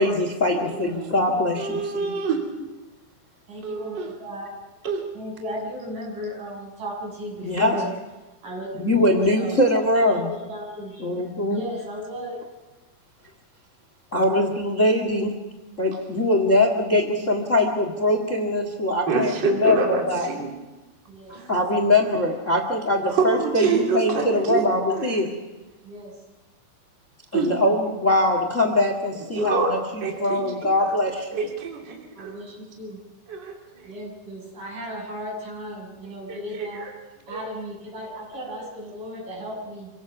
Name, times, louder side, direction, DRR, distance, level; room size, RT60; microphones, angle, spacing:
voice 1, 0.0-2.2 7.4-7.7 8.8-10.3 11.0-11.6 14.1-15.4 15.8-20.3 21.5-25.3 27.3-31.3, left 1 dB, 90° left, 4 dB, 0.6 m, -22 dB
voice 2, 0.5-1.1 1.6-2.4 3.6-4.1 4.8-5.1 19.1-20.5 21.3-21.5 23.1-24.6 24.9-25.1 27.3-27.5 29.3-29.7 30.0-30.9 31.3-32.3 33.3-33.9 36.3-36.9 37.3-37.4, right 5 dB, 30° right, -1 dB, 2.9 m, -26 dB
voice 3, 3.5-4.6 5.1-7.9 8.4-9.6 9.9-11.1 11.5-12.4 21.1-21.4 23.0-23.2 25.8-26.2 32.2-33.0 33.8-36.9 37.3-39.9, equal, 45° right, -2 dB, 8.1 m, -35 dB
27.0 x 17.5 x 6.0 m, 1.2 s
omnidirectional pair, 5.0 m